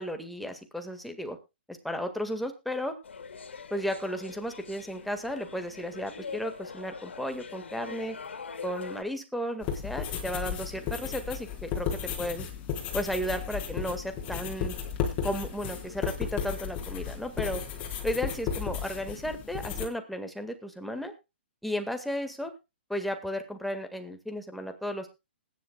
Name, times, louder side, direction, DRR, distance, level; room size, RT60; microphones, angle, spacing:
voice 1, 0.0-1.4 1.7-2.9 3.7-8.2 8.6-12.5 12.9-14.8 15.2-17.6 18.0-21.1 21.6-22.5 22.9-25.1, equal, ahead, 6 dB, 1.8 m, -34 dB
sound 1, 3.0-9.0, left 5 dB, 90° left, 2.3 m, -42 dB
sound 2, 9.6-19.9, left 7 dB, 25° left, 4.0 m, -34 dB
20.0 x 10.5 x 2.3 m, 0.26 s
hypercardioid pair, 150°, 6 cm